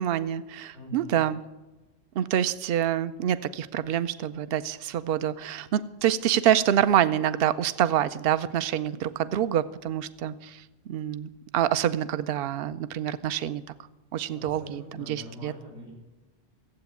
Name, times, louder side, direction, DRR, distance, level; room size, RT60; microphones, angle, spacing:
voice 1, 0.0-1.4 2.1-13.6 14.1-15.5, right 10 dB, 65° right, 14 dB, 0.8 m, -26 dB
voice 2, 0.7-1.2 14.3-15.9, left 1 dB, 85° right, -3 dB, 4.9 m, -43 dB
15.5 x 8.1 x 8.2 m, 1.1 s
omnidirectional pair, 1.1 m